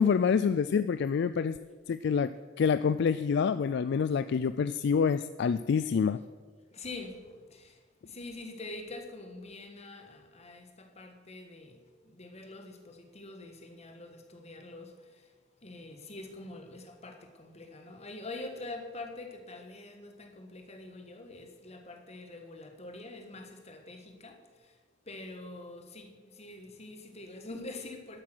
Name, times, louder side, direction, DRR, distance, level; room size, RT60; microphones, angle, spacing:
voice 1, 0.0-1.6 1.9-2.3 2.6-6.2, left 6 dB, 60° left, 13 dB, 0.3 m, -27 dB
voice 2, 6.7-28.2, left 2 dB, 35° left, 5 dB, 1.5 m, -45 dB
12.5 x 8.5 x 6.2 m, 1.5 s
head